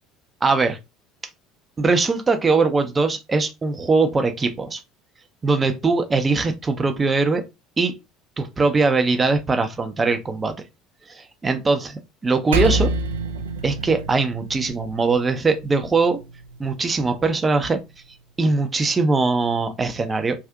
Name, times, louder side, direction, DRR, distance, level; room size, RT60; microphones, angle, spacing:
voice 1, 0.4-0.8 1.8-4.8 5.4-7.4 7.8-7.9 8.4-10.5 11.1-12.9 13.6-16.2 16.6-17.8 18.4-20.3, right 3 dB, 25° right, 0.5 m, -21 dB
Percussion, 12.5-17.3, right 2 dB, 75° right, 0.4 m, -28 dB
3.6 x 2.5 x 2.3 m
figure-of-eight pair, 65°, 0 cm